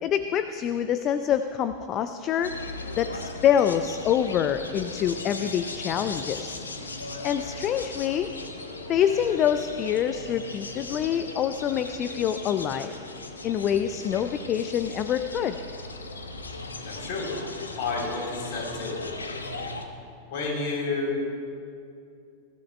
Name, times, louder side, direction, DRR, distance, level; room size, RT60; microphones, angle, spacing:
voice 1, 0.0-2.5 3.0-6.6 7.2-8.3 8.9-12.9 13.4-15.6, left 9 dB, 30° left, 10 dB, 0.5 m, -26 dB
sound 1, 2.4-19.8, left 3 dB, 75° left, 1.0 m, -38 dB
voice 2, 16.8-17.3 17.8-19.0 20.3-21.3, left 3 dB, 50° left, -1 dB, 3.6 m, -30 dB
21.5 x 15.5 x 2.3 m, 2.5 s
figure-of-eight pair, 90°, 0 cm